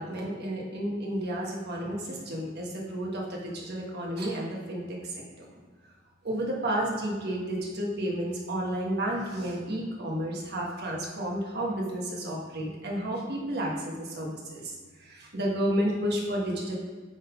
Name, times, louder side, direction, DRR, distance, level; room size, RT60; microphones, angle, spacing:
voice 1, 0.0-5.1 6.2-14.7 15.0-16.8, right 1 dB, 50° right, -2 dB, 1.4 m, -31 dB
8.2 x 3.6 x 4.9 m, 1.5 s
head